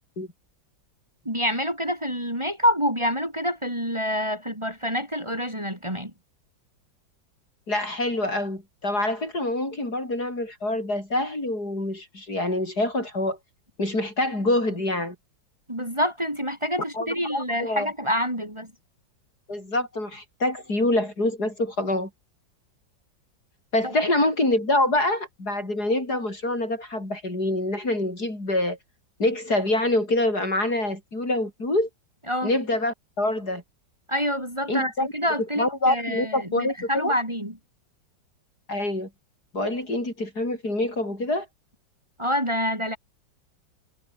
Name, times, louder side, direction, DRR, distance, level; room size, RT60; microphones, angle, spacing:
voice 1, 1.2-6.1 15.7-18.7 23.8-23.9 32.3-32.5 34.1-37.5 42.2-43.0, equal, 15° right, 6.0 m, -27 dB
voice 2, 7.7-13.4 13.8-15.2 16.9-17.9 19.5-22.1 23.7-28.8 29.2-31.9 32.4-33.6 34.7-35.1 35.6-37.1 38.7-39.1 39.5-41.5, left 1 dB, 50° left, 8.7 m, -26 dB
omnidirectional pair, 2.1 m